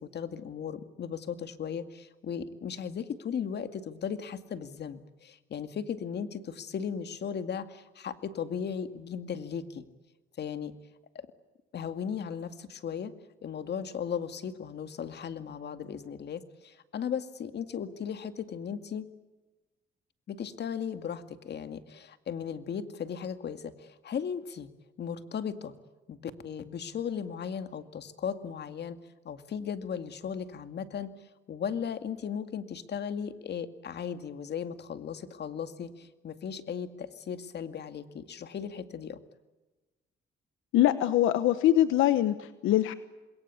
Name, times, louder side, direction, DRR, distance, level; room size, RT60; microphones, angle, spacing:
voice 1, 0.0-9.9 10.4-10.7 11.1-11.3 11.7-13.1 13.4-19.1 20.3-24.7 25.0-25.7 26.1-26.2 26.4-29.0 29.2-31.1 31.5-39.2, left 7 dB, 60° left, 10 dB, 2.2 m, -36 dB
voice 2, 40.7-42.9, left 13 dB, 90° left, 12 dB, 1.2 m, -23 dB
27.0 x 22.0 x 8.5 m, 1.1 s
cardioid pair, 90°, 20 cm